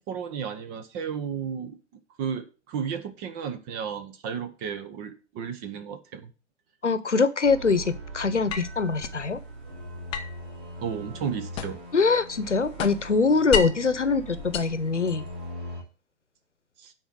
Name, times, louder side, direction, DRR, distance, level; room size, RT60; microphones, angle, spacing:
voice 1, 0.1-1.8 2.2-6.3 10.8-11.8 16.8-16.9, right 7 dB, 25° right, 1.0 m, -33 dB
voice 2, 6.8-9.4 11.9-15.2, left 4 dB, 85° left, 1.0 m, -23 dB
sound 1, 7.4-15.8, right 1 dB, 50° right, 4.3 m, -40 dB
sound 2, 8.5-9.2 10.1-12.0 12.3-13.9 14.4-15.5, left 8 dB, 15° left, 0.6 m, -33 dB
9.2 x 4.4 x 6.3 m
figure-of-eight pair, 115°, 35 cm